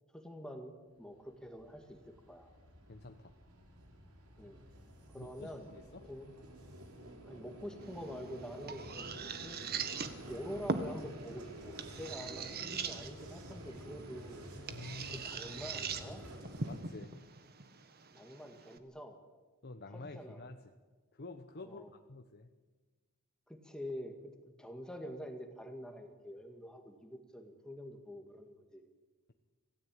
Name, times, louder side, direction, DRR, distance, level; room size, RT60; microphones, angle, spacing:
voice 1, 0.1-2.5 4.4-4.6 5.1-5.7 6.0-6.3 7.2-9.6 10.3-14.5 15.1-16.2 18.1-19.2 19.9-20.5 21.6-21.9 23.5-28.8, equal, 5° left, 4 dB, 1.8 m, -46 dB
Vehicle, 1.2-16.8, right 1 dB, 75° right, 4.6 m, -50 dB
voice 2, 2.9-3.4 5.1-6.0 14.7-15.3 16.7-17.2 19.6-20.7 21.1-22.5, left 2 dB, 50° left, 6 dB, 1.1 m, -49 dB
sound 1, 7.8-18.8, right 4 dB, 45° right, 1.6 m, -42 dB
27.0 x 17.0 x 9.0 m, 1.4 s
head